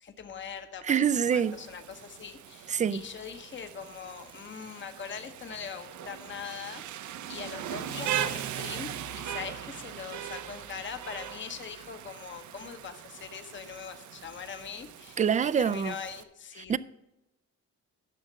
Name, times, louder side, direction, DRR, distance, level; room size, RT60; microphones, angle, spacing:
voice 1, 0.0-0.9 1.3-6.8 7.3-16.8, left 7 dB, 40° left, 1.0 m, -42 dB
voice 2, 0.8-1.6 2.7-3.0 15.2-16.0 16.6-16.8, right 7 dB, 25° right, 0.4 m, -26 dB
Rain, 1.1-16.2, right 10 dB, 75° right, 0.7 m, -40 dB
10.5 x 6.5 x 6.3 m
cardioid pair, 90°, 30 cm